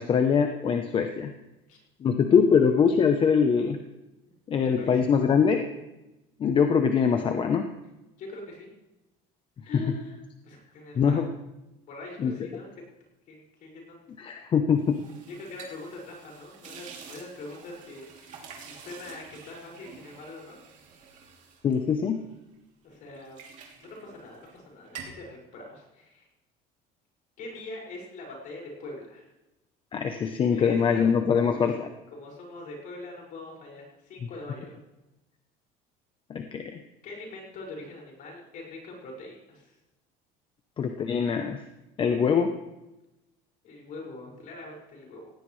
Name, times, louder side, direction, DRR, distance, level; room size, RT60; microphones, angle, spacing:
voice 1, 0.0-1.3 2.0-3.8 4.5-5.7 6.4-7.7 11.0-11.3 12.2-12.3 14.2-15.0 21.6-22.3 29.9-31.9 36.3-36.8 40.8-41.6 42.0-42.5, left 6 dB, 30° left, 6 dB, 0.8 m, -23 dB
voice 2, 4.2-5.0 8.2-8.7 9.7-11.2 11.7-12.7 13.3-14.0 15.3-20.6 22.8-23.4 23.8-26.3 27.4-29.3 30.5-31.1 31.4-31.7 32.1-34.8 37.0-39.8 43.6-45.3, left 2 dB, 50° left, -2 dB, 5.9 m, -43 dB
sound 1, 14.8-22.5 22.9-24.6 24.8-25.3, right 5 dB, 45° right, 2.9 m, -48 dB
17.5 x 17.0 x 3.3 m, 0.98 s
cardioid pair, 145°, 17 cm